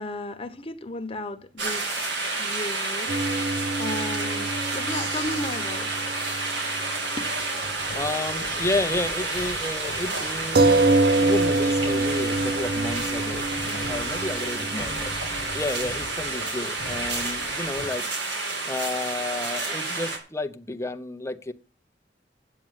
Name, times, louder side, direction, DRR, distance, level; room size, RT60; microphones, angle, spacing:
voice 1, 0.0-3.1 3.8-5.9 7.2-7.3, left 2 dB, 35° left, 1.1 m, -34 dB
sound 1, 1.6-20.2, right 3 dB, 90° right, 3.0 m, -30 dB
sound 2, 3.1-7.0 7.2-7.3 10.5-15.8, right 2 dB, 60° right, 0.6 m, -26 dB
sound 3, 7.6-17.9, left 2 dB, 65° left, 1.3 m, -41 dB
voice 2, 7.9-15.1 15.5-18.1 18.7-21.5, left 2 dB, 15° left, 0.7 m, -31 dB
8.7 x 7.7 x 7.4 m
head